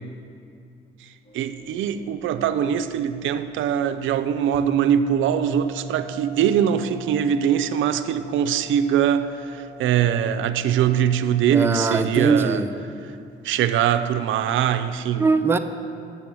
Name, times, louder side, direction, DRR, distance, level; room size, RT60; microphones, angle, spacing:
sound 1, 1.2-12.2, right 3 dB, 85° left, 1.5 m, -47 dB
voice 1, 1.3-12.6 13.4-15.3, right 9 dB, 75° right, 10 dB, 0.4 m, -22 dB
sound 2, 4.5-12.2, right 2 dB, 50° right, 1.3 m, -40 dB
voice 2, 11.5-12.7 15.2-15.6, right 4 dB, 10° right, 6 dB, 0.5 m, -21 dB
7.0 x 6.8 x 7.5 m, 2.4 s
cardioid pair, 90°, 20 cm